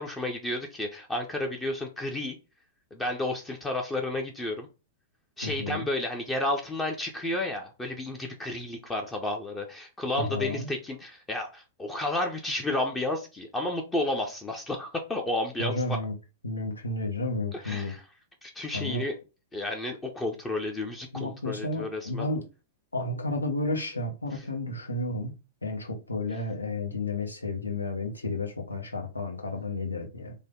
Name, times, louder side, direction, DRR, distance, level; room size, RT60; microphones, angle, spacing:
voice 1, 0.0-2.4 2.9-4.7 5.4-16.0 17.5-18.0 18.4-19.1 19.5-22.3 24.3-24.4, left 1 dB, 15° left, 0.5 m, -32 dB
voice 2, 5.4-5.9 10.2-10.7 15.6-16.1 16.4-17.9 18.7-19.0 21.1-22.4 22.9-30.3, left 2 dB, 90° left, 0.8 m, -32 dB
3.3 x 2.1 x 3.6 m
figure-of-eight pair, 105°, 0 cm